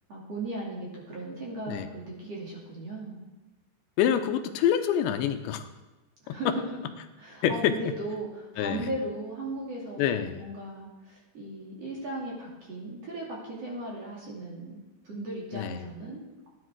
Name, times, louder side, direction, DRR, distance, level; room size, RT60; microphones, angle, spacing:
voice 1, 0.1-3.2 6.2-6.8 7.2-16.5, right 2 dB, 40° right, -4 dB, 3.2 m, -37 dB
voice 2, 4.0-5.6 6.3-6.4 7.4-7.8 8.6-8.9 10.0-10.4 15.5-15.8, left 9 dB, 80° left, 8 dB, 2.9 m, -26 dB
15.5 x 10.5 x 4.7 m, 1.1 s
omnidirectional pair, 5.2 m